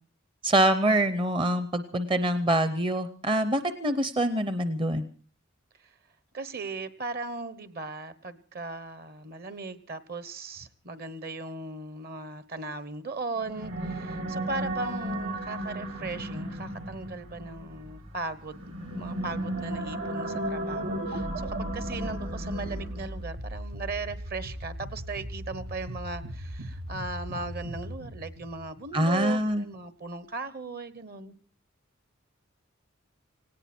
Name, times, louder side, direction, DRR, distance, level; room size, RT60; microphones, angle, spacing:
voice 1, 0.4-5.1 28.9-29.7, right 1 dB, 25° right, 11 dB, 0.7 m, -25 dB
voice 2, 6.3-31.3, right 3 dB, 50° right, 14 dB, 1.2 m, -38 dB
sound 1, 13.4-23.2, right 1 dB, 70° right, 4.4 m, -35 dB
sound 2, 20.0-29.3, equal, 90° right, 1.3 m, -38 dB
18.5 x 17.5 x 4.4 m, 0.40 s
head